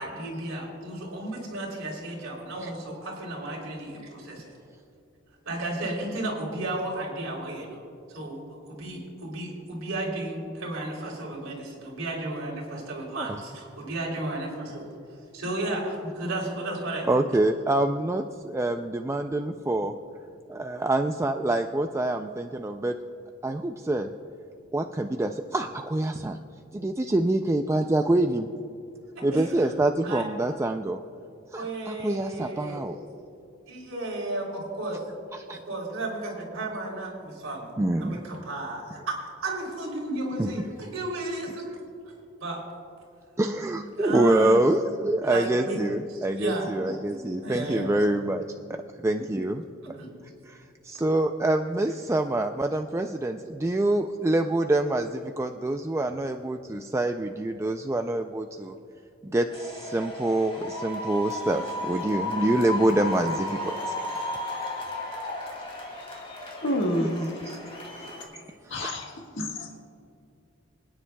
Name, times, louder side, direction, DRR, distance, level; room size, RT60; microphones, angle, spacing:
voice 1, 0.0-4.5 5.4-7.8 8.1-14.8 15.3-17.1 29.1-29.7 30.0-30.2 31.5-32.8 33.7-35.0 35.5-37.7 38.0-41.8 42.4-42.6 44.0-44.5 45.2-45.8 46.1-47.0 47.3-48.0 50.0-50.1, right 2 dB, 70° right, -2 dB, 3.2 m, -33 dB
voice 2, 17.1-19.9 20.5-23.0 23.4-24.1 24.7-26.4 26.7-28.5 29.2-31.0 31.5-33.0 35.3-35.6 37.8-38.2 40.4-40.6 43.4-49.6 50.5-58.7 59.2-63.9 67.0-67.6 67.9-68.1 68.6-69.0, right 1 dB, 15° right, 5 dB, 0.3 m, -26 dB
sound 1, 59.5-68.2, left 1 dB, 25° left, 2.4 m, -34 dB
voice 3, 66.6-67.5 68.3-68.4 68.7-69.8, left 1 dB, 60° left, 1 dB, 1.6 m, -29 dB
25.0 x 9.8 x 2.3 m, 2.7 s
head